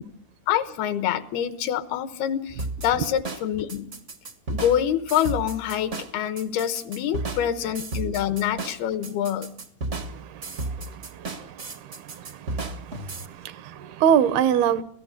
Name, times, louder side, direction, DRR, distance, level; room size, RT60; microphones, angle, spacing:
voice 1, 0.5-3.9 4.5-9.5, left 10 dB, 75° left, 3.1 m, -26 dB
sound 1, 2.6-13.3, right 2 dB, 55° right, 0.8 m, -34 dB
voice 2, 9.9-14.8, right 9 dB, 80° right, 2.9 m, -26 dB
28.0 x 17.5 x 6.6 m
omnidirectional pair, 4.6 m